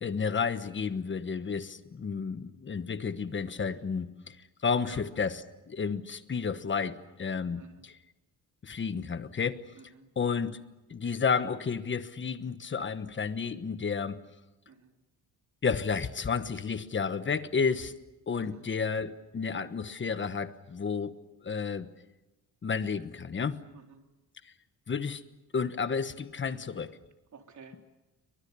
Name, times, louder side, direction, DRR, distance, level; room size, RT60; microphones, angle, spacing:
voice 1, 0.0-4.4 4.6-7.9 8.6-9.6 10.2-10.6 10.9-14.2 15.6-17.9 18.3-21.9 22.6-23.6 24.9-25.2 25.5-27.0, left 5 dB, 30° left, 1.3 m, -31 dB
voice 2, 7.6-7.9 9.8-10.1 14.7-14.9 18.4-18.7 23.7-24.0 27.3-27.8, right 5 dB, 45° right, 3.7 m, -52 dB
29.5 x 24.0 x 7.0 m
wide cardioid pair, 160°, 39 cm